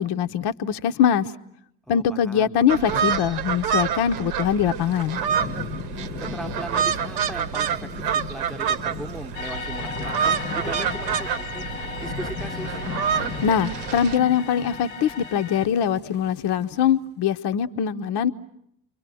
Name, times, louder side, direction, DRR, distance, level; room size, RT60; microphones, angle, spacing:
voice 1, 0.0-1.3 1.9-5.2 13.4-18.3, left 8 dB, 55° left, 9 dB, 1.0 m, -22 dB
voice 2, 1.9-2.6 6.2-11.6 12.0-12.8, right 1 dB, ahead, 9 dB, 1.1 m, -38 dB
sound 1, 2.7-14.2, right 7 dB, 75° right, 1.0 m, -27 dB
Thunderstorm / Rain, 4.7-17.0, left 6 dB, 20° left, 1.0 m, -38 dB
sound 2, 9.3-15.7, left 4 dB, 85° left, 1.3 m, -36 dB
29.5 x 23.5 x 7.7 m, 0.74 s
hypercardioid pair, 60°, 49 cm